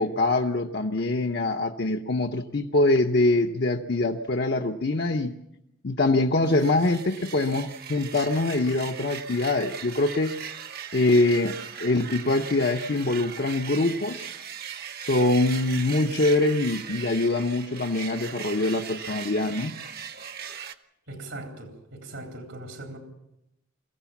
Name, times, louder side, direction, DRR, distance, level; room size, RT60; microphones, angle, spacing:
voice 1, 0.0-5.3 5.8-10.3 10.9-14.3 15.0-19.7, left 2 dB, 50° left, 4 dB, 0.8 m, -24 dB
sound 1, 6.4-20.7, right 7 dB, 50° right, 1.0 m, -39 dB
voice 2, 21.1-23.0, right 2 dB, 80° right, 2 dB, 3.7 m, -40 dB
23.5 x 16.0 x 7.2 m, 0.87 s
head